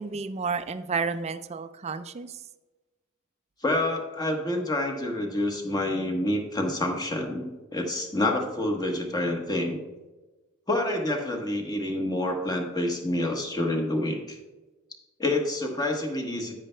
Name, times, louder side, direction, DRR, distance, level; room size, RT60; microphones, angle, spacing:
voice 1, 0.0-2.3, right 5 dB, 30° right, 11 dB, 0.4 m, -31 dB
voice 2, 3.6-9.8 10.7-14.4 15.2-16.6, left 1 dB, 20° left, 3 dB, 1.1 m, -28 dB
10.0 x 9.1 x 2.2 m, 1.2 s
head